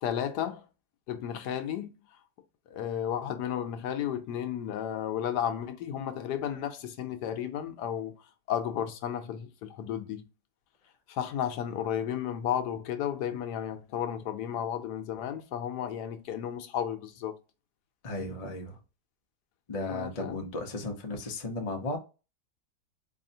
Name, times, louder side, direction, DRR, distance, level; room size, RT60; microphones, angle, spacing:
voice 1, 0.0-0.7 1.1-1.9 2.7-8.1 8.5-10.2 11.1-17.4 19.9-20.4, left 9 dB, 80° left, 1.2 m, -33 dB
voice 2, 18.0-18.8 19.7-22.0, left 2 dB, 35° left, 0.6 m, -35 dB
4.1 x 3.1 x 2.7 m
omnidirectional pair, 1.8 m